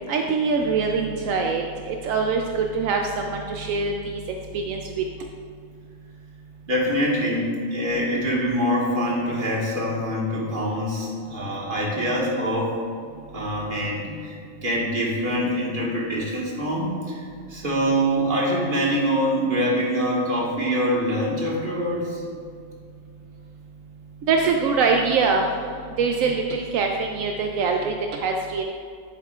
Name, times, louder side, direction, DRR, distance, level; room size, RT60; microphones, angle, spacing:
voice 1, 0.1-3.9 4.7-5.0 24.3-25.5 26.0-28.6, right 4 dB, 80° right, 2 dB, 1.0 m, -23 dB
voice 2, 6.7-12.8 13.3-22.2, equal, 40° right, -4 dB, 1.8 m, -24 dB
10.5 x 8.2 x 2.4 m, 2.2 s
omnidirectional pair, 1.4 m